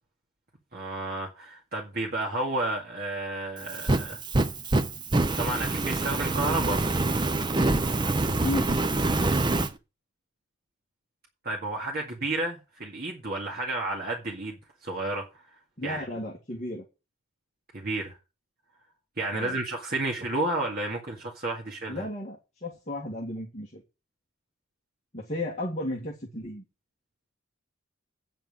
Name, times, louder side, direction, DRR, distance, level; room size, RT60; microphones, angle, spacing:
voice 1, 0.7-4.2 5.4-6.9 11.4-15.4 15.8-16.0 17.7-18.2 19.2-22.0, right 2 dB, 45° right, 2.0 m, -31 dB
Fire, 3.6-9.7, right 2 dB, 20° right, 0.5 m, -26 dB
voice 2, 8.2-8.7 15.8-16.8 19.3-19.6 21.9-23.8 25.1-26.6, left 1 dB, 30° left, 2.0 m, -34 dB
9.0 x 5.4 x 7.4 m
head